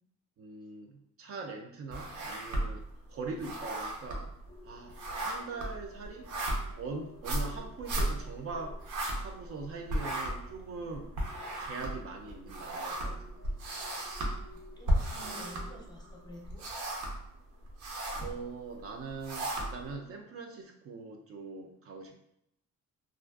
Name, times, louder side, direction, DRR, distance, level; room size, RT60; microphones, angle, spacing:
voice 1, 0.4-2.8 3.1-4.3 4.6-6.3 6.8-8.8 9.2-11.2 11.6-13.4 18.2-22.2, right 4 dB, 50° right, 3 dB, 0.4 m, -42 dB
sound 1, 1.9-2.9 3.2-9.6 9.9-16.1 16.4-17.3 17.6-18.3 18.9-19.9, right 1 dB, 85° right, 0.7 m, -35 dB
sound 2, 4.5-16.4, equal, 85° left, 0.5 m, -56 dB
voice 2, 14.5-16.6, equal, 15° left, -1 dB, 0.6 m, -50 dB
2.4 x 2.4 x 2.3 m, 0.75 s
cardioid pair, 90°, 30 cm